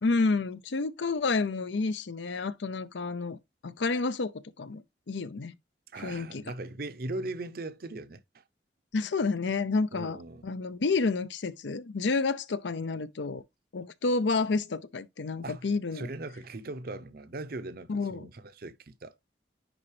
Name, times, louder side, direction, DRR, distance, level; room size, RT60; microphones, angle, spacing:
voice 1, 0.0-5.5 5.9-6.4 8.9-13.4 13.7-16.1 17.9-18.3, left 3 dB, 80° left, 0.6 m, -30 dB
voice 2, 5.9-8.2 9.9-10.4 15.4-15.7 15.9-19.1, right 2 dB, 55° right, 0.7 m, -39 dB
10.0 x 3.9 x 3.2 m
head